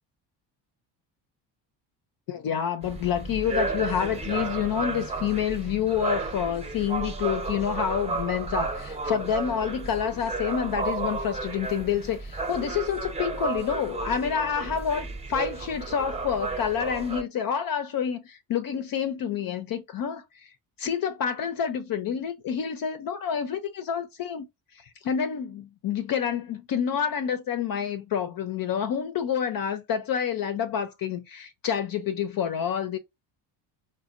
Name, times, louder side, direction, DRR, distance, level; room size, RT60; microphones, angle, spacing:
voice 1, 2.3-20.5 20.8-24.5 24.7-33.0, left 8 dB, 50° left, 0.6 m, -28 dB
sound 1, 2.8-17.2, right 3 dB, 15° right, 0.7 m, -33 dB
4.1 x 2.2 x 2.5 m
cardioid pair, 90°, 46 cm